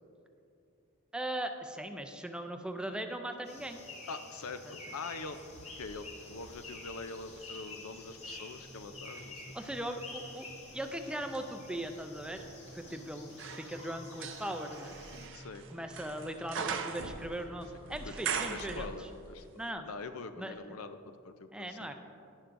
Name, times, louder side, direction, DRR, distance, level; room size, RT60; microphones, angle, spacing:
voice 1, 1.1-3.8 4.7-4.8 9.5-10.5 10.7-12.4 12.7-15.0 15.7-19.1 19.6-19.8 20.4-20.6 21.5-21.9, right 1 dB, 5° right, 6 dB, 0.4 m, -39 dB
sound 1, 3.4-15.3, left 3 dB, 30° left, 1.3 m, -50 dB
voice 2, 4.1-5.4 5.8-9.5 15.3-15.7 18.0-19.5 19.8-21.0 21.2-21.9, left 4 dB, 80° left, 10 dB, 0.5 m, -44 dB
sound 2, 5.3-7.5 8.1-19.4 19.7-19.8, right 6 dB, 60° right, 0.5 m, -43 dB
sound 3, 8.6-18.5, equal, 85° right, 1.1 m, -55 dB
11.5 x 10.5 x 2.6 m, 2.6 s
head